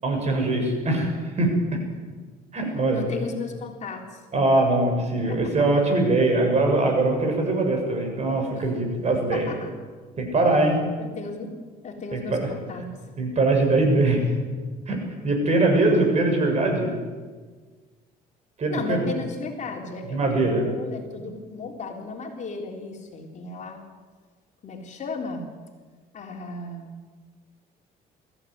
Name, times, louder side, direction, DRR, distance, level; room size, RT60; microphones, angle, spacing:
voice 1, 0.0-1.8 2.5-3.0 4.3-9.5 10.2-10.8 12.1-12.5 13.2-14.2 14.9-16.9 18.6-19.1 20.1-20.6, right 2 dB, 40° right, 3 dB, 7.0 m, -22 dB
voice 2, 2.9-4.2 5.3-6.0 8.5-8.7 9.3-9.7 11.0-11.6 11.8-12.9 18.7-23.8 24.6-25.5 26.1-27.0, left 3 dB, 45° left, 2 dB, 3.9 m, -35 dB
22.0 x 15.0 x 9.6 m, 1.5 s
cardioid pair, 110°, 17 cm